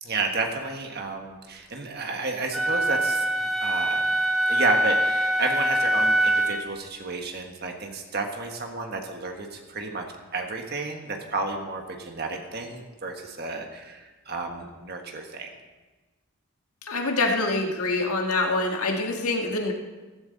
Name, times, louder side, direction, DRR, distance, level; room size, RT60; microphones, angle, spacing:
voice 1, 0.0-4.2 4.5-10.0 10.3-15.5, right 3 dB, 45° right, 3 dB, 1.5 m, -32 dB
Wind instrument woodwind instrument, 2.5-6.7, right 1 dB, ahead, 1.0 m, -23 dB
voice 2, 16.8-19.7, left 2 dB, 85° left, 1 dB, 1.8 m, -25 dB
15.0 x 15.0 x 4.1 m, 1.2 s
head